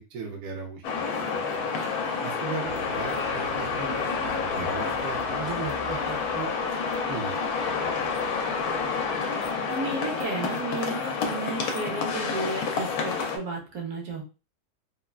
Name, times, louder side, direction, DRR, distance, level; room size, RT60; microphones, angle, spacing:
voice 1, 0.1-1.4 2.2-6.5 7.1-7.3 7.8-7.9, right 5 dB, 65° right, 0 dB, 1.1 m, -37 dB
sound 1, 0.8-13.4, left 5 dB, 75° left, 1.1 m, -29 dB
sound 2, 2.6-10.7, equal, 40° right, 0.8 m, -47 dB
voice 2, 9.7-14.2, right 3 dB, 80° right, 0 dB, 1.3 m, -33 dB
3.5 x 2.1 x 2.3 m, 0.32 s
omnidirectional pair, 1.6 m